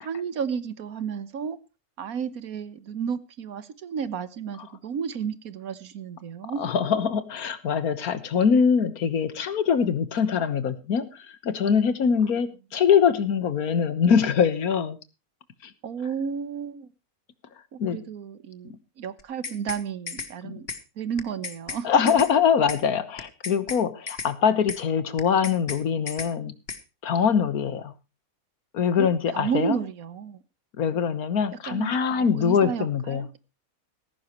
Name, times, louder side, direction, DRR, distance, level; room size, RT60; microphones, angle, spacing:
voice 1, 0.0-1.6 2.0-6.6 15.8-16.9 17.7-20.7 21.0-21.9 29.0-30.4 31.6-33.4, right 7 dB, 75° right, 1.5 m, -32 dB
voice 2, 6.6-15.0 15.6-15.7 17.8-18.0 20.4-20.5 21.8-26.5 27.0-27.9 28.7-29.8 30.8-33.3, left 7 dB, 80° left, 1.6 m, -23 dB
sound 1, 19.2-19.8 20.1-20.3 20.7-20.8 21.2-21.8 22.1-22.3 22.7-22.8 23.2-23.8 24.1-24.3 24.7-24.8 25.2-25.8 26.1-26.3 26.7-26.8, left 5 dB, 45° left, 1.5 m, -34 dB
16.5 x 15.0 x 3.0 m
omnidirectional pair, 1.5 m